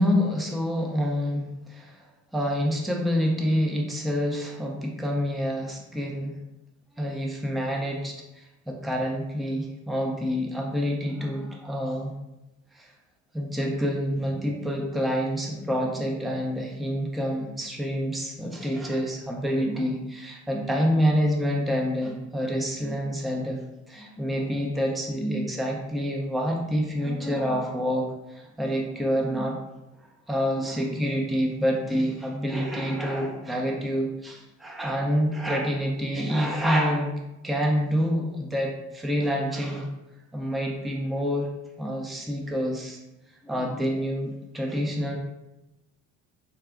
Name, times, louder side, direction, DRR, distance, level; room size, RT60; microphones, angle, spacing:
voice 1, 0.0-2.0 2.3-6.4 7.0-12.1 12.7-12.9 13.3-23.6 23.9-29.6 30.3-39.9 40.3-41.5 41.8-43.0 43.4-45.2, equal, ahead, 0 dB, 0.7 m, -27 dB
5.8 x 2.3 x 3.7 m, 0.95 s
supercardioid pair, 70°, 41 cm